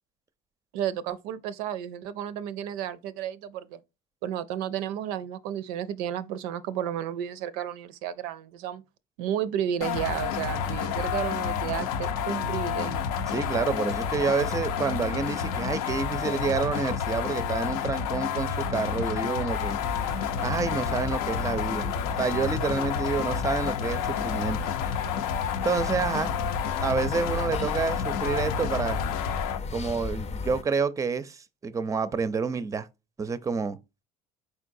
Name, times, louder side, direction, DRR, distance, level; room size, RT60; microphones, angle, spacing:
voice 1, 0.7-3.8 4.2-8.8 9.2-13.1, right 10 dB, 80° right, 0.4 m, -32 dB
sound 1, 9.8-29.6, left 7 dB, 80° left, 0.6 m, -30 dB
voice 2, 13.3-20.2 20.4-21.9 22.2-24.6 25.6-26.3 26.8-29.0 29.7-32.9 33.2-33.8, right 5 dB, 15° right, 0.4 m, -28 dB
sound 2, 19.5-30.6, left 4 dB, 35° left, 0.6 m, -37 dB
4.5 x 3.7 x 2.6 m
supercardioid pair, 80°, 19 cm